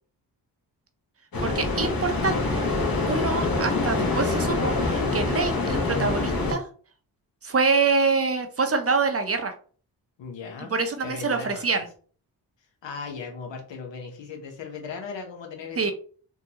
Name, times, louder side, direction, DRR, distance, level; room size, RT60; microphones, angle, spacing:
sound 1, 1.3-6.5, left 3 dB, 50° left, 1.1 m, -25 dB
voice 1, 1.4-2.7 3.1-6.6 7.4-9.5 10.7-11.9 15.8-15.9, right 4 dB, 35° right, 6 dB, 0.6 m, -25 dB
voice 2, 10.2-11.8 12.8-15.8, left 5 dB, 80° left, 3 dB, 1.0 m, -37 dB
3.6 x 2.3 x 2.8 m, 0.43 s
cardioid pair, 60°, 44 cm